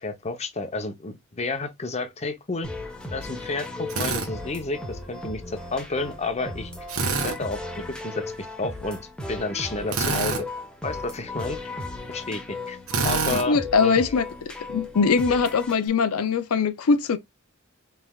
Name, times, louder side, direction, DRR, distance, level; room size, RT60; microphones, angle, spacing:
voice 1, 0.0-2.7 3.1-6.7 7.2-9.0 9.3-10.5 10.8-11.6 12.1-12.8 13.0-14.2 15.3-15.4, left 3 dB, 30° left, 0.8 m, -31 dB
sound 1, 2.6-15.7, left 2 dB, 5° left, 0.9 m, -36 dB
Drill, 3.9-4.3 6.9-7.4 9.9-10.4 12.9-13.5, right 4 dB, 80° right, 1.2 m, -25 dB
voice 2, 13.3-14.2 14.7-17.2, left 5 dB, 80° left, 0.5 m, -21 dB
5.6 x 3.3 x 2.3 m
head